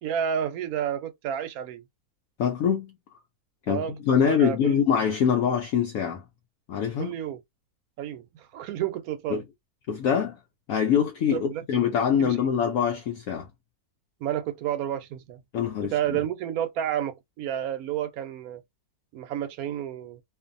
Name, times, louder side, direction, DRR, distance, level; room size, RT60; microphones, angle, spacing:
voice 1, 0.0-1.8 3.7-3.9 4.2-4.8 7.0-7.4 8.0-9.4 11.3-11.6 12.2-12.5 14.2-15.4 15.8-18.6 19.1-20.2, right 10 dB, 75° right, 1.0 m, -30 dB
voice 2, 2.4-2.9 3.7-6.2 6.7-7.1 9.3-9.4 9.9-10.4 10.7-13.5 15.5-15.9, left 7 dB, 70° left, 1.0 m, -24 dB
2.6 x 2.5 x 2.5 m
omnidirectional pair, 1.6 m